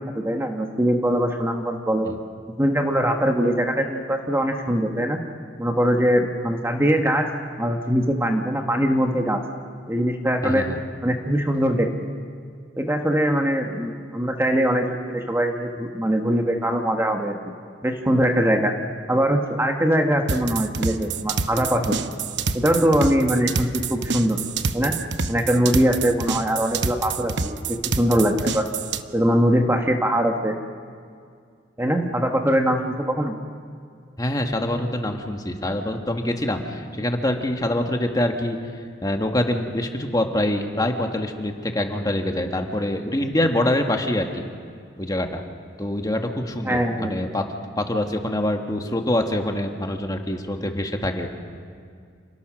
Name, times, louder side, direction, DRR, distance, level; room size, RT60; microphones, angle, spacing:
voice 1, 0.0-2.1 2.6-5.2 5.6-7.3 7.6-9.4 9.9-10.6 11.0-11.9 12.8-17.5 17.8-18.7 19.1-22.0 22.5-24.4 24.7-24.9 25.3-28.7 29.1-30.6 31.8-33.4 46.6-47.2, equal, 15° right, 3 dB, 1.3 m, -22 dB
voice 2, 10.4-10.8 34.2-38.6 39.0-44.4 45.0-45.4 45.8-47.4 47.8-51.3, left 1 dB, 20° left, 4 dB, 1.6 m, -25 dB
sound 1, 20.3-29.0, right 4 dB, 65° right, 0.9 m, -27 dB
28.0 x 19.5 x 6.3 m, 2.2 s
head